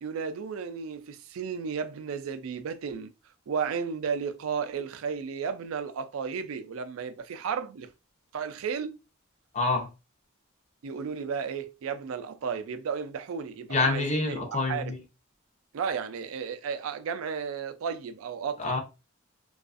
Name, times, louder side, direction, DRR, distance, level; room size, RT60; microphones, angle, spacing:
voice 1, 0.0-3.1 3.5-7.9 8.3-9.0 10.8-14.9 15.7-18.8, right 6 dB, 75° right, 0.4 m, -33 dB
voice 2, 9.5-9.9 13.7-15.0 18.6-18.8, left 3 dB, 35° left, 0.6 m, -27 dB
2.4 x 2.3 x 2.4 m
head